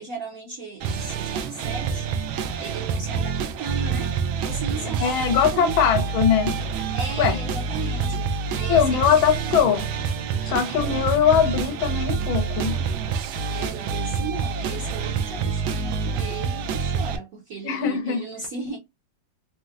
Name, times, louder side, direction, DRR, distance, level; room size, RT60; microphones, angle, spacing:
voice 1, 0.0-5.8 6.9-9.2 9.4-9.6 12.9-18.8, right 4 dB, 60° right, 0.9 m, -36 dB
sound 1, 0.8-17.2, right 5 dB, 80° right, 1.4 m, -27 dB
voice 2, 5.0-6.5 7.2-7.4 8.7-9.9 10.4-12.7 17.6-18.2, left 8 dB, 80° left, 1.5 m, -21 dB
4.2 x 2.0 x 2.4 m
omnidirectional pair, 2.2 m